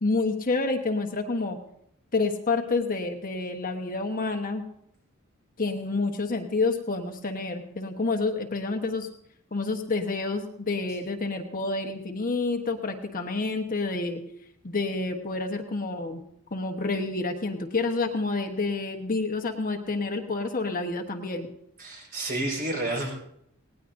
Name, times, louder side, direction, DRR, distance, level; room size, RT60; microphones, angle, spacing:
voice 1, 0.0-1.6 2.1-4.6 5.6-9.1 9.5-14.2 14.6-16.2 16.5-21.5, left 3 dB, 40° left, 4 dB, 1.1 m, -28 dB
voice 2, 21.8-23.1, right 2 dB, 45° right, 0 dB, 4.5 m, -30 dB
19.0 x 18.0 x 2.6 m, 0.73 s
head